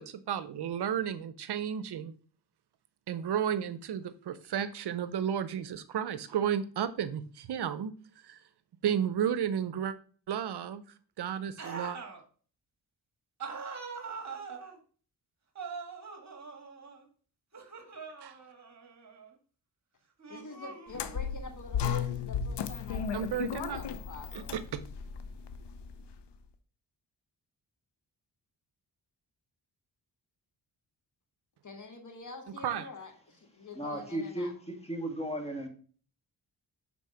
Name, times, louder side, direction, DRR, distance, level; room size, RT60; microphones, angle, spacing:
voice 1, 0.0-2.1 3.1-7.9 8.2-8.4 8.8-9.9 10.3-10.8 11.2-12.0 18.2-18.3 23.1-23.8 24.3-24.8 32.6-32.9, right 9 dB, 65° right, 0.7 m, -32 dB
sound 1, 11.6-12.2 13.4-14.8 15.6-17.1 17.5-19.3 20.2-21.3, right 5 dB, 40° right, 1.8 m, -43 dB
voice 2, 20.3-24.5 31.6-34.5, left 3 dB, 45° left, 2.1 m, -46 dB
sound 2, 20.9-26.1, left 7 dB, 75° left, 0.8 m, -35 dB
voice 3, 33.8-35.7, right 1 dB, 15° left, 2.0 m, -35 dB
6.1 x 4.2 x 5.6 m
cardioid pair, 65°, 42 cm